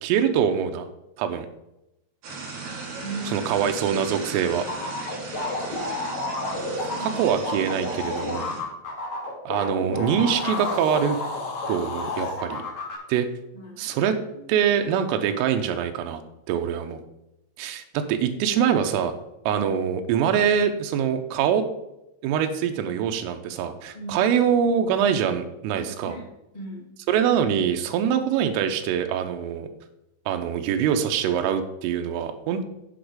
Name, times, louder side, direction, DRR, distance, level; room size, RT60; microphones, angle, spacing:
voice 1, 0.0-0.9 1.2-1.5 3.3-4.7 7.0-8.5 9.5-11.2 11.7-12.6 13.1-13.3 13.8-14.2 14.5-16.2 16.5-17.0 17.6-19.1 19.5-21.7 22.2-26.2 27.1-29.7 30.3-32.6, right 8 dB, 85° right, 6 dB, 3.5 m, -24 dB
sound 1, 2.2-8.6, right 3 dB, 55° right, 4.4 m, -37 dB
voice 2, 3.0-3.7 6.8-7.3 13.5-14.5 23.9-24.3 25.8-26.8, right 2 dB, 25° left, -3 dB, 0.9 m, -38 dB
sound 2, 4.7-11.7 12.0-13.0, left 2 dB, 40° left, 3.8 m, -30 dB
sound 3, 10.3-12.4, left 4 dB, 75° left, 4.4 m, -33 dB
8.4 x 8.0 x 5.0 m, 0.88 s
omnidirectional pair, 5.8 m